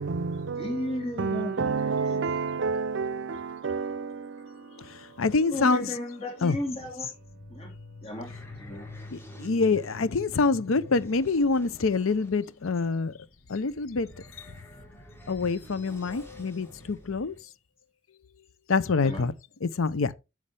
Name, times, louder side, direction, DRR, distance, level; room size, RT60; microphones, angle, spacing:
voice 1, 0.0-5.2 7.9-8.0, right 4 dB, 60° right, 0.6 m, -31 dB
voice 2, 0.6-1.7 2.0-2.2 5.5-7.1 7.5-7.7 8.0-8.3 8.6-8.9 19.0-19.3, left 1 dB, 30° left, 3.0 m, -34 dB
voice 3, 4.8-5.9 6.4-6.6 9.1-13.1 13.5-14.1 14.4-14.5 15.3-17.3 18.7-19.3 19.6-20.1, left 4 dB, 80° left, 0.6 m, -26 dB
sound 1, 6.9-17.4, left 2 dB, 10° left, 2.2 m, -47 dB
9.8 x 6.4 x 3.3 m
head